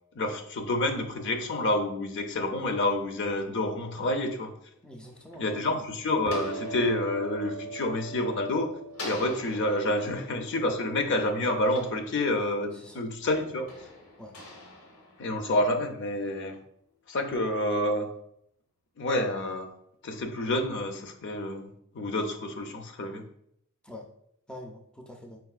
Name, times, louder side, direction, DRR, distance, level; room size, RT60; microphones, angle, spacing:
voice 1, 0.1-4.5 5.4-8.7 9.0-13.7 15.2-16.6 17.1-18.1 19.0-19.7 20.0-23.2, left 1 dB, 55° left, 5 dB, 0.5 m, -28 dB
sound 1, 4.8-8.5 8.9-12.7 13.3-15.9, left 2 dB, 85° left, 1.1 m, -46 dB
voice 2, 4.8-5.8 12.7-13.0 14.2-14.4 23.8-24.1 24.5-25.4, left 1 dB, 5° left, 1 dB, 0.4 m, -45 dB
sound 2, 6.2-13.7, right 3 dB, 85° right, 0.4 m, -42 dB
4.6 x 3.9 x 2.4 m, 0.72 s
head